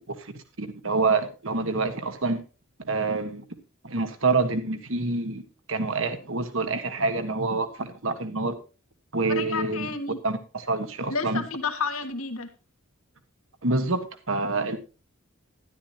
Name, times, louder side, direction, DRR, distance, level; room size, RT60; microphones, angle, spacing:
voice 1, 0.1-2.4 2.8-3.4 3.8-8.6 9.1-9.9 10.2-11.4 13.6-14.8, right 3 dB, 65° right, 9 dB, 1.4 m, -27 dB
voice 2, 9.3-10.2 11.1-12.5, left 4 dB, 75° left, 5 dB, 1.8 m, -30 dB
12.5 x 11.5 x 2.9 m, 0.33 s
head